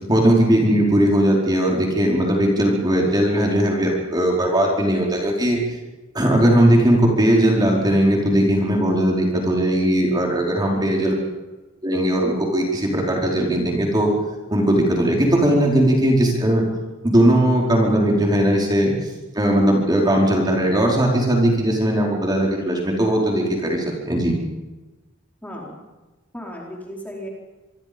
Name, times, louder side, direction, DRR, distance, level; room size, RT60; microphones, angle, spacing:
voice 1, 0.0-5.6 6.1-11.1 11.8-14.1 14.5-16.6 17.0-18.9 19.3-24.4, right 1 dB, 20° right, -1 dB, 4.7 m, -18 dB
voice 2, 10.6-11.3 25.4-25.8 26.3-27.3, equal, 10° left, -2 dB, 4.4 m, -35 dB
26.5 x 23.0 x 5.3 m, 1.2 s
head